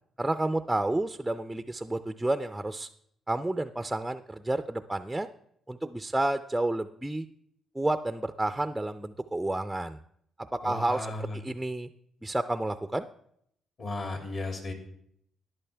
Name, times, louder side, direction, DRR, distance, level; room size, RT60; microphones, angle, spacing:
voice 1, 0.2-2.9 3.3-5.3 5.7-7.3 7.7-10.0 10.5-11.1 11.3-11.9 12.2-13.1, right 1 dB, 10° right, 10 dB, 0.4 m, -30 dB
voice 2, 10.6-11.4 13.8-14.7, left 2 dB, 50° left, 3 dB, 2.9 m, -35 dB
13.0 x 11.0 x 3.4 m, 0.70 s
cardioid pair, 90°, 0 cm